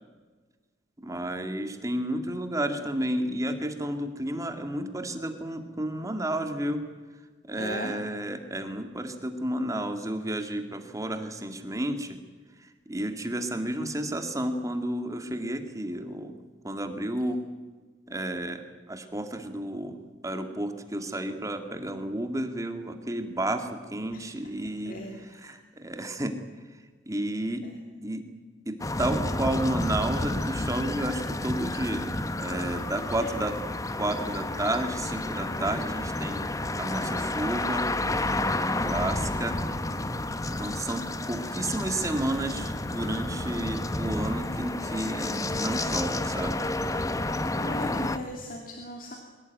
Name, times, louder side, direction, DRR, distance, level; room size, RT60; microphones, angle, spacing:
voice 1, 1.0-6.8 7.5-12.2 12.6-17.4 18.1-20.0 20.2-26.3 27.1-27.7 28.0-28.2 28.7-32.1 32.4-33.6 34.0-36.4 36.8-37.8 38.6-39.6 40.6-46.6 47.7-48.2, right 1 dB, 20° right, 6 dB, 2.0 m, -31 dB
voice 2, 7.6-8.0 24.1-24.3 24.8-25.2 27.6-27.7 33.2-33.5 47.5-49.2, left 1 dB, 50° left, 2 dB, 2.8 m, -38 dB
sound 1, 28.8-48.2, left 2 dB, 20° left, 1.0 m, -30 dB
23.0 x 17.5 x 9.2 m, 1.4 s
head